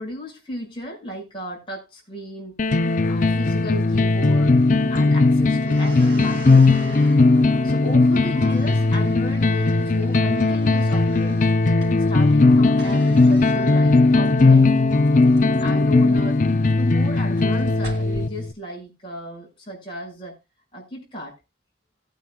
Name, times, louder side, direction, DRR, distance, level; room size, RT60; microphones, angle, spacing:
voice 1, 0.0-2.6 3.1-4.6 4.9-6.7 7.6-11.4 12.1-14.7 15.6-16.4 16.8-20.4 20.7-21.3, equal, 30° left, 5.8 m, -33 dB
sound 1, 2.6-18.5, left 3 dB, 45° left, 0.5 m, -18 dB
sound 2, 4.0-18.2, right 2 dB, 65° right, 3.1 m, -45 dB
19.0 x 9.2 x 2.3 m
head